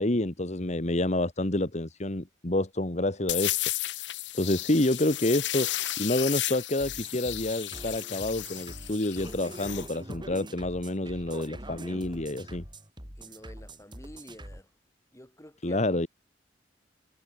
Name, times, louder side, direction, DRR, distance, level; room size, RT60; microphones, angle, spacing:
voice 1, 0.0-5.7 6.0-12.6 15.6-16.1, left 1 dB, 40° left, 1.8 m, -28 dB
sound 1, 3.3-9.9, left 15 dB, 85° left, 1.1 m, -33 dB
sound 2, 6.8-14.6, right 1 dB, 25° right, 7.9 m, -44 dB
voice 2, 13.2-14.7 15.1-16.0, left 1 dB, 15° left, 7.9 m, -49 dB
head